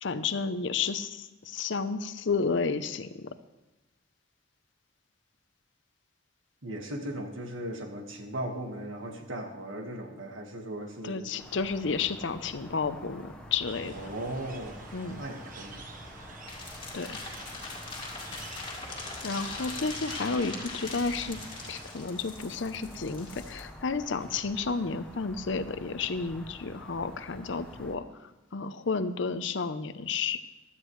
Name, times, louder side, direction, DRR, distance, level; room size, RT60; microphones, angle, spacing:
voice 1, 0.0-3.3 11.0-13.9 14.9-15.2 16.9-17.2 19.2-21.4 21.7-28.0 28.5-30.4, left 4 dB, 70° left, 11 dB, 0.7 m, -31 dB
voice 2, 6.6-11.3 13.9-14.9 15.2-15.8, right 1 dB, 80° right, 4 dB, 1.6 m, -37 dB
sound 1, 11.4-28.0, left 1 dB, 5° left, 1.1 m, -48 dB
sound 2, 13.7-21.8, right 3 dB, 45° right, 1.2 m, -47 dB
sound 3, 16.5-23.6, left 3 dB, 25° left, 2.0 m, -41 dB
16.0 x 12.0 x 3.2 m, 1.1 s
head